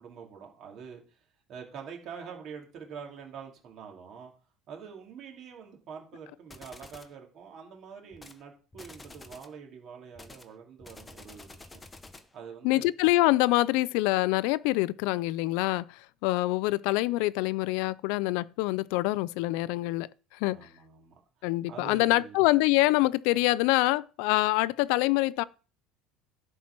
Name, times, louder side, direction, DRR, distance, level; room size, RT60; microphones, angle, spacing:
voice 1, 0.0-4.3 4.7-11.8 12.3-12.9 20.4-21.2 21.7-22.4, right 6 dB, 45° right, 2.9 m, -45 dB
sound 1, 6.5-7.2 8.1-8.4 8.7-9.6 10.2-12.4, left 2 dB, 10° left, 0.9 m, -49 dB
voice 2, 12.6-20.7 21.4-25.4, left 19 dB, 75° left, 0.3 m, -25 dB
11.5 x 4.4 x 5.9 m
cardioid pair, 145°, 0 cm